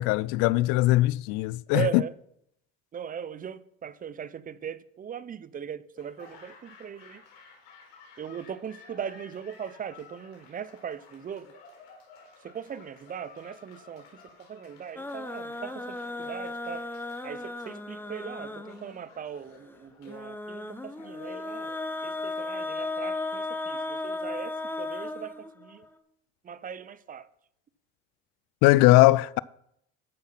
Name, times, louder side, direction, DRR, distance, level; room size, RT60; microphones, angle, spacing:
voice 1, 0.0-2.0 28.6-29.4, left 18 dB, 70° left, 0.5 m, -20 dB
voice 2, 1.7-2.1 2.9-7.2 8.2-11.5 12.4-16.9 17.2-21.7 22.0-25.9 26.4-27.3, right 8 dB, 30° right, 0.6 m, -39 dB
Laughter / Applause, 5.9-24.0, left 5 dB, 85° left, 4.4 m, -54 dB
sound 1, 15.0-19.0 20.1-25.9, left 2 dB, 5° left, 1.0 m, -35 dB
13.0 x 5.8 x 5.7 m
supercardioid pair, 105°, 30 cm